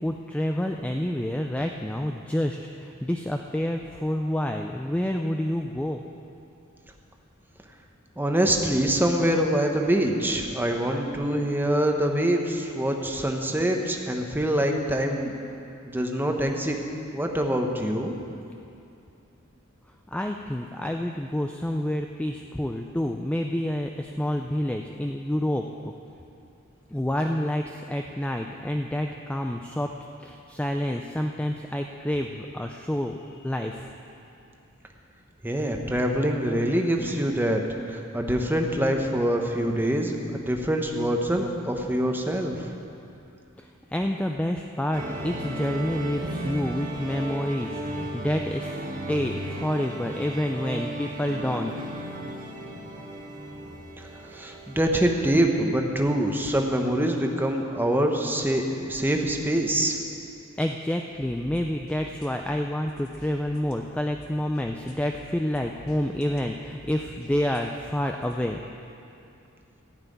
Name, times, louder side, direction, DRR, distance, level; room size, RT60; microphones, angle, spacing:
voice 1, 0.0-6.0 20.1-25.9 26.9-29.9 30.2-33.9 37.1-37.2 43.6-48.7 49.1-51.7 60.6-68.6, left 1 dB, 5° left, 3 dB, 0.4 m, -28 dB
voice 2, 8.2-15.6 15.8-16.8 17.1-18.2 35.4-37.6 37.9-42.5 54.3-60.0, right 1 dB, 10° right, 3 dB, 0.9 m, -25 dB
sound 1, 44.9-54.9, right 1 dB, 40° right, 1.3 m, -35 dB
sound 2, 61.1-68.4, equal, 80° left, 2.0 m, -50 dB
14.5 x 5.7 x 9.2 m, 2.7 s
head